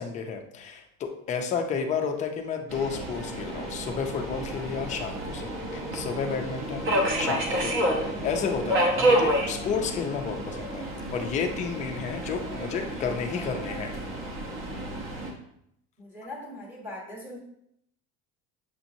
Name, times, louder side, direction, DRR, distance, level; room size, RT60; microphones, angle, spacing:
voice 1, 0.0-10.9 11.1-13.9, left 6 dB, 20° left, 4 dB, 0.3 m, -31 dB
Subway metro underground, 2.7-15.3, right 1 dB, 35° right, 0.8 m, -29 dB
voice 2, 16.0-17.4, left 1 dB, 5° right, -4 dB, 1.0 m, -40 dB
6.9 x 2.8 x 2.6 m, 0.75 s
cardioid pair, 165°, 36 cm